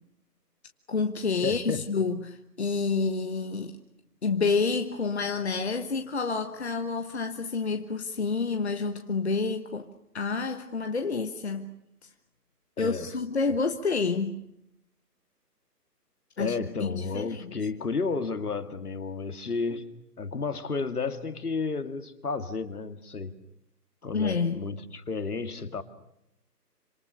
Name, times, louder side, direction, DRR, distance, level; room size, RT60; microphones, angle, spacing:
voice 1, 0.9-3.8 4.2-9.9 10.1-11.7 12.8-14.4 16.4-16.5 16.8-17.5 24.1-24.6, left 4 dB, 40° left, 1.3 m, -28 dB
voice 2, 1.4-1.8 12.8-13.1 16.4-19.9 20.2-23.3 24.0-25.8, left 4 dB, 65° left, 2.4 m, -32 dB
27.0 x 26.5 x 6.8 m
hypercardioid pair, 170°, 49 cm